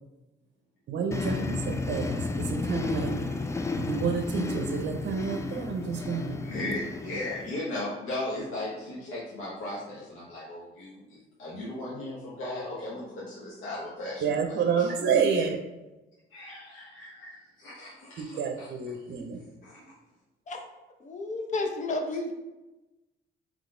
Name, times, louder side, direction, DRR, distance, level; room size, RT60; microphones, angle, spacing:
voice 1, 0.9-3.2 3.8-6.5 14.2-15.6 18.2-19.4, right 6 dB, 60° right, 5 dB, 0.6 m, -29 dB
sound 1, 1.1-7.5, left 3 dB, 15° left, 0.3 m, -33 dB
voice 2, 6.4-15.5 16.3-19.2 19.6-19.8, left 1 dB, 85° left, -7 dB, 1.1 m, -37 dB
voice 3, 21.0-22.3, left 2 dB, 40° left, 3 dB, 0.8 m, -31 dB
3.8 x 3.1 x 3.7 m, 1.0 s
cardioid pair, 90°, 20 cm